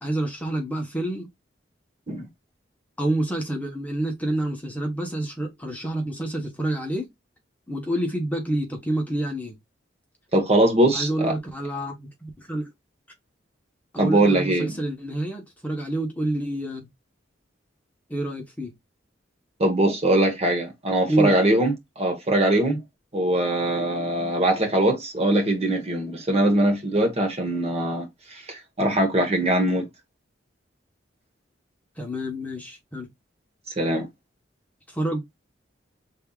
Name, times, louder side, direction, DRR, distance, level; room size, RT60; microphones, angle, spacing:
voice 1, 0.0-1.3 3.0-7.1 7.7-9.6 10.9-12.7 13.9-16.9 18.1-18.7 21.1-21.4 32.0-33.1 34.9-35.2, right 1 dB, 10° left, 1.1 m, -28 dB
voice 2, 10.3-11.3 14.0-14.7 19.6-22.8 23.1-28.1 28.3-29.8 33.8-34.1, right 1 dB, 35° right, 1.3 m, -22 dB
5.4 x 3.5 x 2.4 m
head